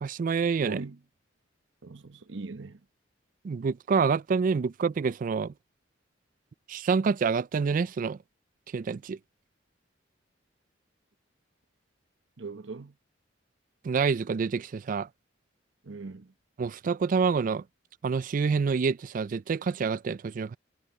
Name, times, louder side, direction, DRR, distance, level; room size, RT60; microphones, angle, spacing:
voice 1, 0.0-0.8 3.4-5.5 6.7-8.2 8.7-9.2 13.8-15.1 16.6-17.6 18.0-20.6, right 5 dB, 45° right, 0.3 m, -27 dB
voice 2, 0.6-1.0 1.8-2.8 12.4-12.9 15.8-16.3, right 3 dB, 75° right, 1.0 m, -40 dB
head